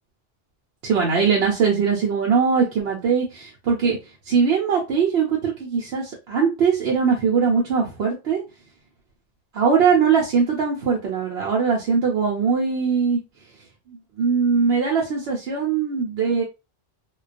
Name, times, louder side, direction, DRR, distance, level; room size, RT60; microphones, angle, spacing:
voice 1, 0.8-4.0 4.3-8.4 9.5-13.2 13.9-16.4, right 6 dB, 80° right, -2 dB, 0.9 m, -21 dB
2.2 x 2.2 x 2.4 m, 0.27 s
omnidirectional pair, 1.1 m